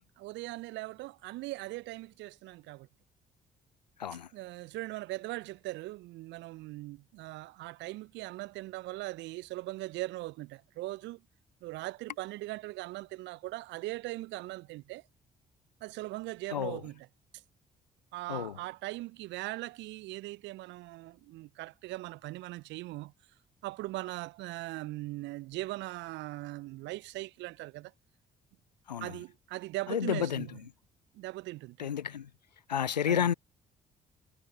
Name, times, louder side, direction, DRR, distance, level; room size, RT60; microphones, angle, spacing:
voice 1, 0.2-2.9 4.3-11.2 11.6-15.0 15.8-17.1 18.1-23.1 23.6-27.9 29.0-30.5 31.1-31.9 33.1-33.2, right 19 dB, 60° right, 1.0 m, -40 dB
voice 2, 16.5-16.8 18.3-18.6 28.9-29.2 29.9-30.5 31.8-32.3 32.7-33.3, left 9 dB, 85° left, 0.5 m, -31 dB
figure-of-eight pair, 45°, 21 cm